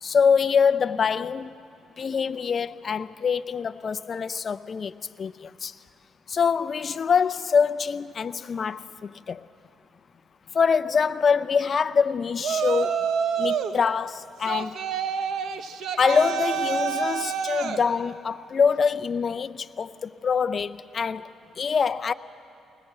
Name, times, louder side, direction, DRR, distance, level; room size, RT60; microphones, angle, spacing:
voice 1, 0.0-1.5 2.0-5.8 6.3-9.5 10.5-13.0 13.4-14.8 16.0-22.1, left 6 dB, 45° left, 0.6 m, -25 dB
Yell, 12.4-13.8 14.4-17.8, right 7 dB, 75° right, 1.0 m, -27 dB
20.5 x 20.0 x 7.5 m
cardioid pair, 90°, 0 cm